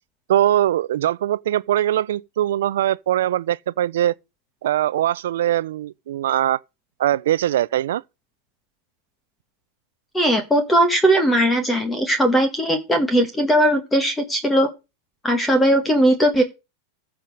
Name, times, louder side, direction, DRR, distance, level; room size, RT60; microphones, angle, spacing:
voice 1, 0.3-4.1 4.6-6.6 7.0-8.0, right 12 dB, 85° right, 0.5 m, -21 dB
voice 2, 10.1-14.7 15.2-16.4, right 1 dB, 10° left, 1.4 m, -18 dB
14.5 x 4.9 x 5.3 m
supercardioid pair, 150°, 0 cm